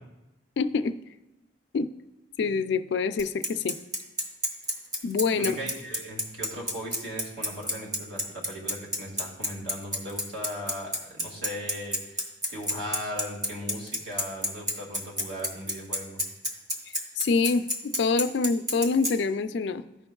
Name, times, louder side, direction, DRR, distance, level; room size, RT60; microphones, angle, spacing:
voice 1, 0.6-1.0 1.7-1.9 2.4-3.8 5.0-5.6 17.2-19.8, left 4 dB, 60° left, 11 dB, 0.3 m, -26 dB
Bicycle, 3.2-19.1, left 1 dB, 20° right, 0.9 m, -29 dB
voice 2, 5.3-16.2, equal, 70° right, -3 dB, 2.1 m, -38 dB
14.0 x 5.2 x 2.3 m, 0.96 s
head